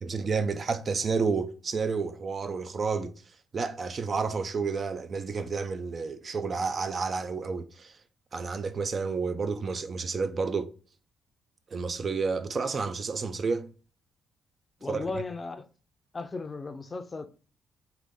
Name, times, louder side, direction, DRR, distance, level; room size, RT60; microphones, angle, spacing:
voice 1, 0.0-8.0 8.3-10.7 11.7-13.7 14.9-15.0, right 4 dB, 40° right, 0.5 m, -30 dB
voice 2, 14.8-15.7 16.1-17.3, left 3 dB, 30° left, 0.5 m, -36 dB
4.0 x 2.7 x 3.6 m
cardioid pair, 90°, 0 cm